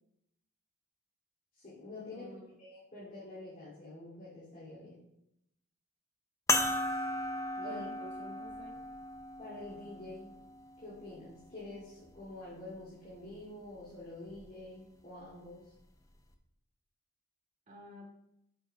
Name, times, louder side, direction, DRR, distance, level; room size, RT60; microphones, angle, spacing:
voice 1, 1.5-5.1 7.6-7.8 9.4-10.3 10.8-15.7, left 2 dB, 40° left, -9 dB, 2.9 m, -47 dB
voice 2, 2.1-2.6 7.6-8.8 17.7-18.1, equal, 35° right, -4 dB, 2.3 m, -48 dB
sound 1, 6.5-11.3 12.1-12.2 14.3-14.4, left 2 dB, 15° left, 0.6 m, -36 dB
9.3 x 7.8 x 2.4 m, 0.81 s
head